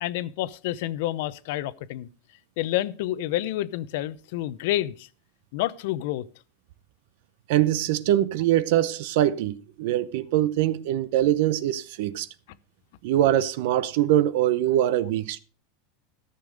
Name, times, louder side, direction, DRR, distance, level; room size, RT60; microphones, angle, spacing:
voice 1, 0.0-2.1 2.6-5.1 5.5-6.3, left 14 dB, 65° left, 0.7 m, -29 dB
voice 2, 7.5-12.3 13.0-15.4, right 12 dB, 60° right, 0.7 m, -23 dB
14.0 x 6.8 x 5.2 m
supercardioid pair, 165°, 0 cm